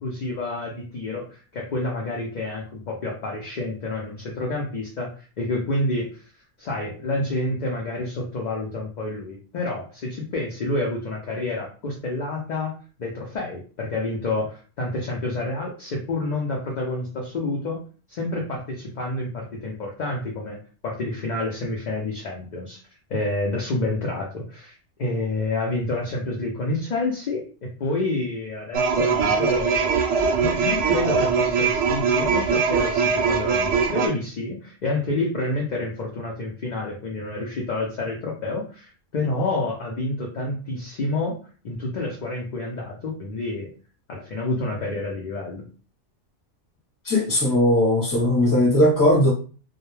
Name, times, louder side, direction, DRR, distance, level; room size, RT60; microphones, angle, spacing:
voice 1, 0.0-6.2 6.6-12.7 13.0-17.8 18.1-20.6 20.8-22.8 23.1-29.9 30.4-41.4 41.6-43.7 44.1-45.6, left 2 dB, 55° left, -1 dB, 0.5 m, -28 dB
sound 1, 28.7-34.1, right 5 dB, 80° right, 0.9 m, -21 dB
voice 2, 47.1-49.3, left 1 dB, 20° left, -3 dB, 0.8 m, -18 dB
2.2 x 2.1 x 3.0 m, 0.38 s
omnidirectional pair, 1.2 m